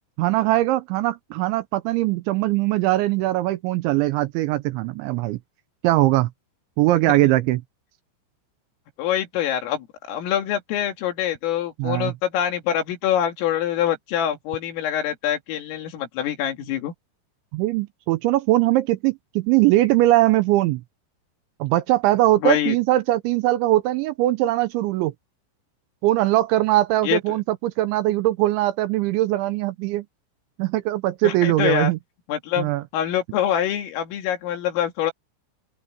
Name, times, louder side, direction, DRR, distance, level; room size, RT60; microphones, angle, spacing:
voice 1, 0.2-5.4 5.8-6.3 6.8-7.6 11.8-12.1 17.5-20.8 21.6-25.1 26.0-30.1 30.6-32.0 32.6-32.8, right 16 dB, 85° right, 2.8 m, -21 dB
voice 2, 9.0-16.9 22.4-22.8 27.0-27.2 31.2-31.9 32.3-35.1, left 10 dB, 80° left, 5.2 m, -25 dB
open air
omnidirectional pair, 5.8 m